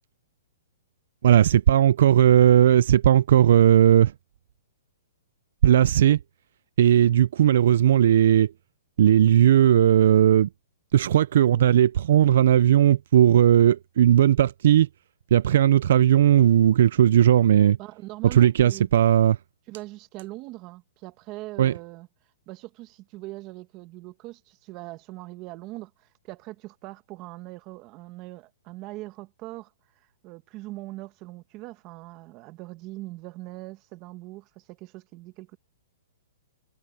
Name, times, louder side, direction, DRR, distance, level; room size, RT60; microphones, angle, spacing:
voice 1, 1.2-4.1 5.6-6.2 6.8-8.5 9.0-10.5 10.9-14.9 15.3-17.8 18.2-19.4 21.6-21.7, right 11 dB, 60° right, 0.4 m, -17 dB
voice 2, 17.8-18.9 19.7-22.1 22.5-29.7 30.2-35.6, right 19 dB, 30° right, 1.5 m, -41 dB
hypercardioid pair, 160°, 0 cm